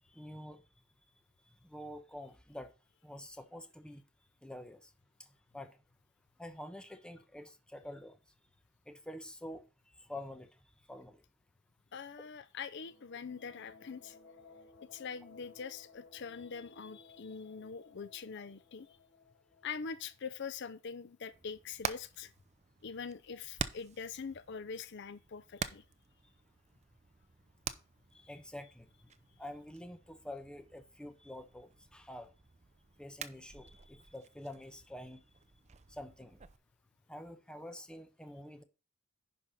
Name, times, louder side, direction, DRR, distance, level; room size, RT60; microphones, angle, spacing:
voice 1, 0.1-0.6 1.6-2.7 3.0-4.0 4.4-4.9 5.5-5.8 6.4-8.2 8.9-9.7 10.0-10.5 10.9-11.2 28.1-28.9 29.4-32.3 33.0-35.2 35.9-36.4 37.1-38.6, left 1 dB, 5° left, 0.9 m, -47 dB
voice 2, 11.9-14.2 14.9-18.9 19.6-22.3 22.8-25.8, left 5 dB, 55° left, 0.6 m, -43 dB
sound 1, 12.6-21.2, left 3 dB, 90° left, 2.3 m, -60 dB
Hammer, 21.3-36.6, right 6 dB, 35° right, 0.6 m, -47 dB
10.5 x 5.3 x 4.1 m
head